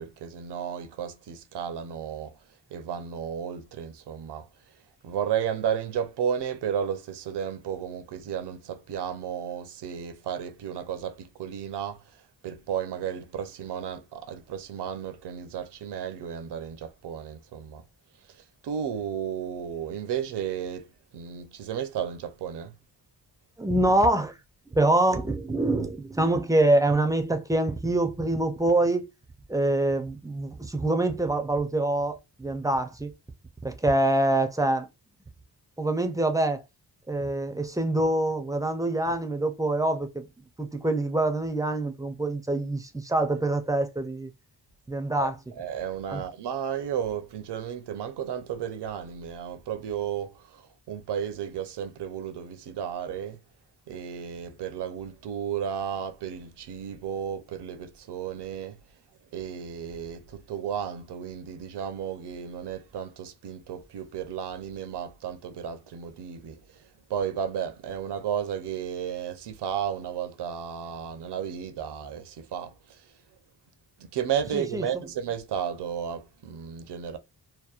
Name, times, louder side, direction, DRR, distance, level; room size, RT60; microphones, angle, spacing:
voice 1, 0.0-2.3 2.7-4.5 5.0-12.0 12.4-17.8 18.6-20.9 21.1-22.7 45.2-45.3 45.6-53.4 53.9-58.8 59.3-66.6 67.1-73.0 74.0-77.2, right 8 dB, 80° right, 0.6 m, -33 dB
voice 2, 23.6-24.4 24.7-29.1 29.5-33.1 33.6-34.9 35.8-36.6 37.1-40.3 40.6-44.3 44.9-45.4 46.1-46.2 74.5-75.1, right 2 dB, 10° right, 0.3 m, -25 dB
2.8 x 2.0 x 2.4 m
wide cardioid pair, 105°, 40 cm